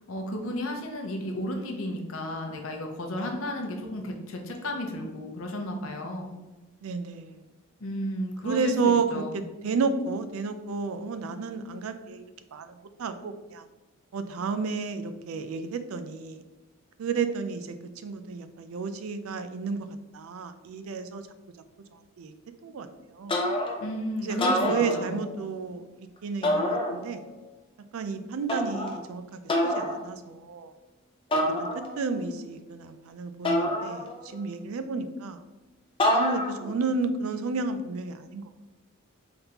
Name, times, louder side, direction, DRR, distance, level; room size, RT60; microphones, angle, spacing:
voice 1, 0.0-6.4 7.8-9.4 23.8-25.2, left 1 dB, 70° left, 2 dB, 0.7 m, -33 dB
voice 2, 6.8-7.4 8.4-12.2 12.5-13.7 14.1-16.4 17.0-17.8 18.0-19.9 20.1-21.3 21.9-22.3 22.6-23.4 24.2-27.2 27.9-30.7 31.6-31.7 32.0-35.4 36.1-38.4, right 4 dB, 80° right, 9 dB, 0.4 m, -31 dB
sound 1, 23.3-23.9 24.3-25.4 26.4-27.3 28.5-29.0 29.5-30.0 31.3-32.1 33.4-34.4 36.0-36.7, left 1 dB, 25° left, 0.5 m, -27 dB
4.0 x 3.5 x 2.9 m, 1.1 s
head